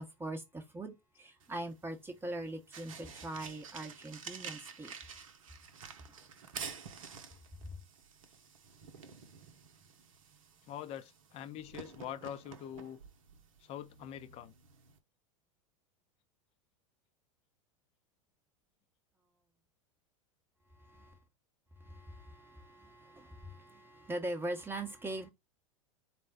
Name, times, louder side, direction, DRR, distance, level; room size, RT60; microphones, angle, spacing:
voice 1, 0.0-4.9 20.8-21.1 21.8-25.3, right 1 dB, 10° right, 0.8 m, -42 dB
sound 1, 1.4-15.0, right 6 dB, 70° right, 0.7 m, -50 dB
voice 2, 10.7-13.0 13.6-14.5, left 10 dB, 35° left, 0.5 m, -44 dB
4.2 x 2.1 x 3.5 m
figure-of-eight pair, 85°, 18 cm